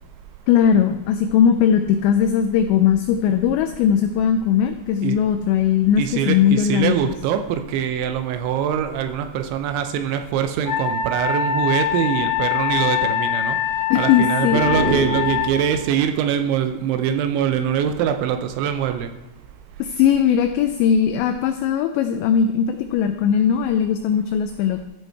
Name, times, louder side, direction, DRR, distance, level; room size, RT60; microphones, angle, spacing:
voice 1, 0.5-7.1 13.9-14.6 19.8-24.9, left 8 dB, 90° left, 8 dB, 2.5 m, -19 dB
voice 2, 6.0-13.6 14.0-19.1, right 9 dB, 80° right, 7 dB, 2.9 m, -23 dB
Wind instrument woodwind instrument, 10.7-15.5, left 9 dB, 55° left, 3.2 m, -23 dB
sound 1, 14.4-16.0, right 2 dB, 45° right, 2.8 m, -26 dB
14.5 x 5.4 x 4.5 m, 0.97 s
omnidirectional pair, 5.6 m